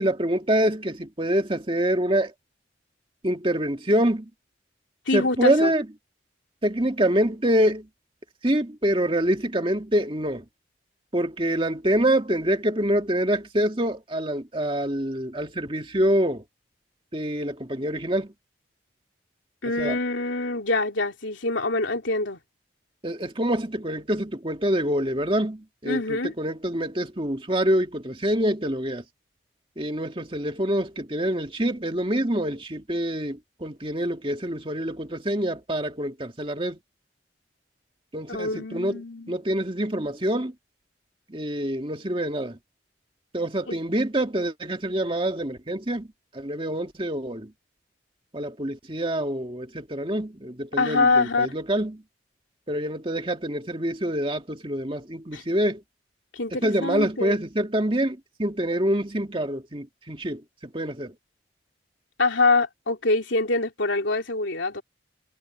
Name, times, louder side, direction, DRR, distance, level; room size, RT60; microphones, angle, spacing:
voice 1, 0.0-2.3 3.2-4.3 5.1-5.9 6.6-7.9 8.4-10.4 11.1-16.4 17.1-18.3 19.8-20.0 23.0-29.0 29.8-36.8 38.1-39.0 39.3-40.5 41.3-42.6 43.3-46.1 46.3-47.5 48.3-52.0 52.7-55.8 56.6-61.1, right 1 dB, 30° right, 2.2 m, -26 dB
voice 2, 5.1-5.7 19.6-22.4 25.8-26.3 38.3-39.4 43.7-43.8 50.8-51.5 55.3-55.4 56.3-57.3 62.2-64.8, left 3 dB, 85° left, 3.3 m, -25 dB
head